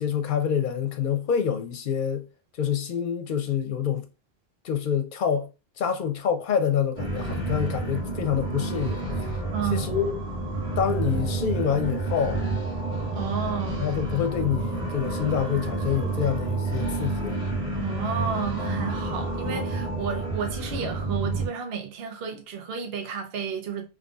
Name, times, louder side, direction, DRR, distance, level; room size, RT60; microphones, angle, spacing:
voice 1, 0.0-2.3 2.6-4.1 4.6-5.5 5.8-9.3 9.7-10.2 10.8-12.4 13.8-17.4, left 8 dB, 55° left, 0.8 m, -27 dB
sound 1, 7.0-21.5, right 2 dB, 55° right, 2.4 m, -29 dB
voice 2, 9.5-9.9 13.1-13.8 17.7-23.9, right 6 dB, 75° right, 0.9 m, -32 dB
3.9 x 3.1 x 2.3 m
omnidirectional pair, 1.0 m